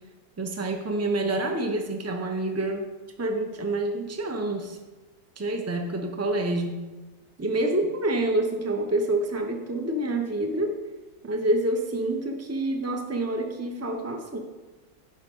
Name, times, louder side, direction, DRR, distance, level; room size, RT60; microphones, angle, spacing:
voice 1, 0.4-2.9 3.2-4.8 5.4-6.8 7.4-10.8 11.2-14.4, right 1 dB, 20° right, 3 dB, 0.4 m, -27 dB
15.5 x 5.8 x 3.8 m, 1.2 s
omnidirectional pair, 2.2 m